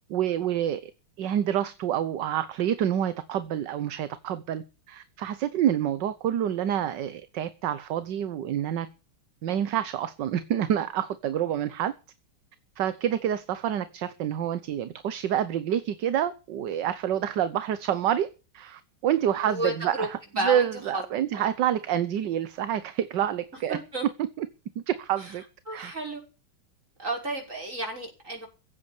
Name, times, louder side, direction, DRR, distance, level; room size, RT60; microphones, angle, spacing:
voice 1, 0.1-0.9 1.2-8.9 9.4-11.9 12.8-20.2 20.4-23.8 24.4-24.5 24.9-25.4 25.7-25.9, right 10 dB, 65° right, 1.5 m, -28 dB
voice 2, 19.4-20.1 20.4-21.0 21.3-21.5 23.7-24.1 25.2-25.4 25.7-26.2 27.0-28.5, right 1 dB, 35° right, 6.3 m, -32 dB
16.0 x 8.5 x 8.3 m
omnidirectional pair, 2.2 m